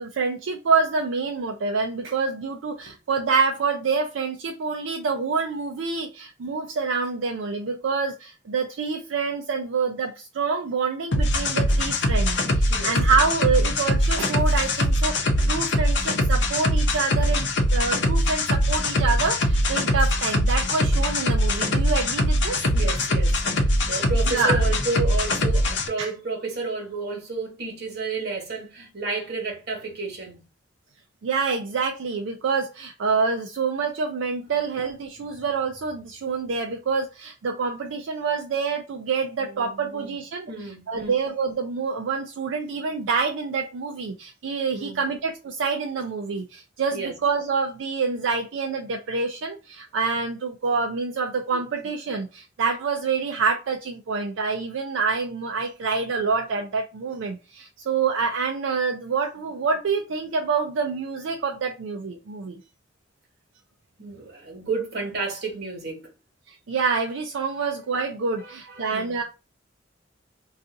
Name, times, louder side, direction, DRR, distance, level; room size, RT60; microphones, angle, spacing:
voice 1, 0.0-22.6 24.3-24.6 26.0-26.1 31.2-40.5 40.9-62.6 66.5-69.2, right 4 dB, 85° right, 0.4 m, -27 dB
sound 1, 11.1-25.9, left 1 dB, 65° left, 0.6 m, -22 dB
voice 2, 22.7-30.4 35.3-35.4 39.4-41.2 44.7-45.1 46.9-47.1 64.0-66.1 68.4-69.2, right 4 dB, 60° right, 1.2 m, -32 dB
2.6 x 2.4 x 3.7 m
head